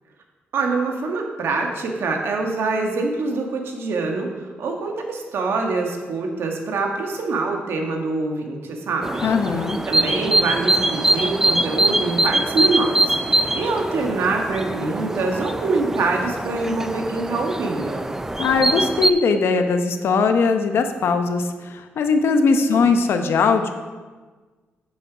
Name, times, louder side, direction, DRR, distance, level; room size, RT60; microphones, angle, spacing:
voice 1, 0.5-4.3 4.6-9.2 9.9-18.0 22.7-23.0, right 3 dB, 70° right, 2 dB, 1.4 m, -25 dB
sound 1, 9.0-19.1, right 2 dB, 10° right, 0.4 m, -23 dB
voice 2, 9.2-9.8 18.4-23.7, left 4 dB, 70° left, 7 dB, 0.8 m, -20 dB
7.8 x 7.3 x 5.0 m, 1.4 s
cardioid pair, 100°, 4 cm